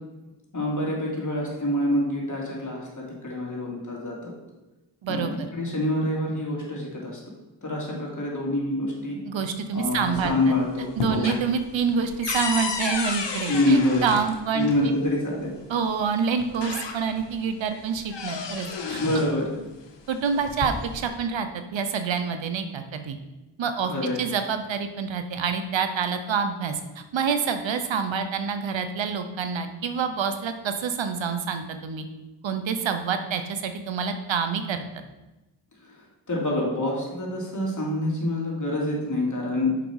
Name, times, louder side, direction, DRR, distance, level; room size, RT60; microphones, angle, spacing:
voice 1, 0.5-4.3 5.1-5.2 5.5-7.2 7.6-9.2 9.7-11.3 13.5-14.1 14.5-15.6 19.0-19.5 23.9-24.2 35.8-39.7, left 1 dB, 40° left, -3 dB, 2.8 m, -26 dB
voice 2, 5.0-5.3 9.2-10.5 11.0-14.9 15.7-19.0 20.1-23.2 23.6-23.9 24.2-32.1 32.4-34.8, right 6 dB, 90° right, 8 dB, 0.8 m, -27 dB
sound 1, 9.8-10.5 10.8-14.8 15.9-16.0 16.4-17.3 17.7-19.4 20.3-21.1, left 5 dB, 70° left, 1.0 m, -32 dB
7.0 x 5.2 x 4.7 m, 1.1 s
cardioid pair, 45°, 44 cm